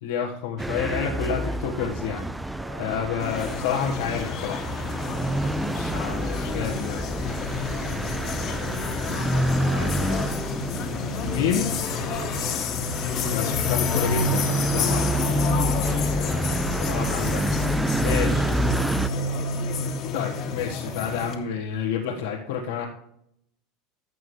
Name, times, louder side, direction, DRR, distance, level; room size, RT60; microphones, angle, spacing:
voice 1, 0.0-2.3 2.8-4.7 5.6-7.2 9.7-9.9 11.1-11.7 13.3-18.6 20.1-22.8, left 7 dB, 90° left, -3 dB, 1.6 m, -30 dB
sound 1, 0.6-19.1, right 1 dB, 5° right, 0.5 m, -29 dB
voice 2, 2.6-3.0 7.5-8.8 9.3-10.3 12.0-12.7 15.6-16.0 17.8-19.5, right 2 dB, 50° right, -2 dB, 3.3 m, -43 dB
sound 2, 3.2-21.3, left 3 dB, 45° left, 1.8 m, -28 dB
15.0 x 6.3 x 3.3 m, 0.74 s
supercardioid pair, 120°, 0 cm